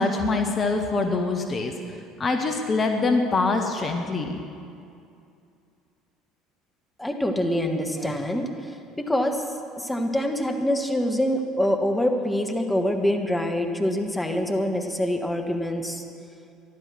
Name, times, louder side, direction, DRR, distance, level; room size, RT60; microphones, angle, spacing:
voice 1, 0.0-1.7 2.2-4.4, left 3 dB, 30° left, 4 dB, 1.3 m, -24 dB
voice 2, 7.0-16.0, left 1 dB, 10° left, 4 dB, 1.4 m, -25 dB
14.0 x 11.5 x 6.3 m, 2.5 s
figure-of-eight pair, 60°, 0 cm